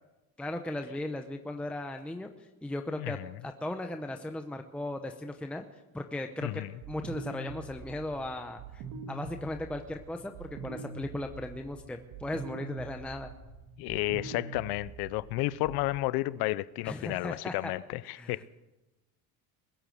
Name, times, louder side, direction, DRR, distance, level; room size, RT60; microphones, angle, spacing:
voice 1, 0.4-5.6 5.9-13.3 16.8-17.7 18.1-18.4, left 1 dB, 5° left, 0.7 m, -37 dB
voice 2, 3.0-3.3 6.4-6.7 13.8-18.4, left 18 dB, 70° left, 0.6 m, -32 dB
sound 1, 6.8-15.9, right 4 dB, 70° right, 2.5 m, -44 dB
21.0 x 8.5 x 7.7 m
cardioid pair, 145°, 40 cm